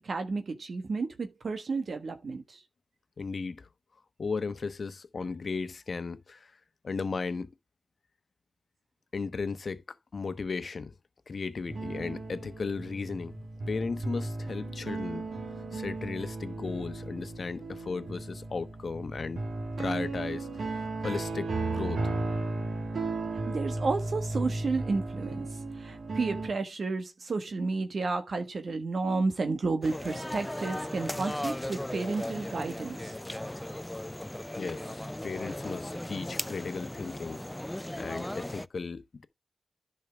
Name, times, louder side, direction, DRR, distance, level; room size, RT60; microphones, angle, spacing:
voice 1, 0.0-2.6 23.5-25.5 25.8-33.1 34.8-34.9, right 3 dB, 65° right, 1.3 m, -32 dB
voice 2, 3.2-3.7 4.2-6.5 6.8-7.5 9.1-10.9 11.3-15.3 15.7-19.4 19.8-22.1 34.6-37.4 38.0-39.2, left 4 dB, 60° left, 1.0 m, -36 dB
sound 1, 11.7-26.5, right 2 dB, 80° right, 2.2 m, -35 dB
sound 2, 29.8-38.7, left 1 dB, 10° left, 0.4 m, -37 dB
10.5 x 5.5 x 3.5 m
cardioid pair, 60°, 0 cm